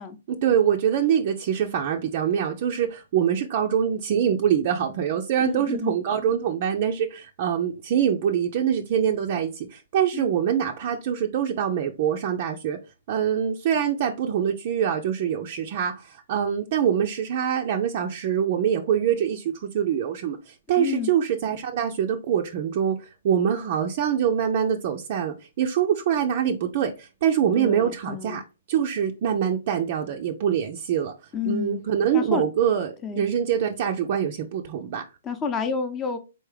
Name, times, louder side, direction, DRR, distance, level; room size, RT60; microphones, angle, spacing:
voice 1, 0.3-12.8 13.1-28.4 28.7-31.1 31.5-35.0, right 8 dB, 45° right, 3 dB, 0.5 m, -24 dB
voice 2, 5.4-5.9 10.1-10.3 20.8-21.1 27.5-28.4 31.3-31.8 32.1-32.4 33.0-33.2 35.2-36.2, left 6 dB, 20° left, 7 dB, 0.7 m, -29 dB
4.1 x 3.4 x 3.2 m, 0.29 s
hypercardioid pair, 135°, 0 cm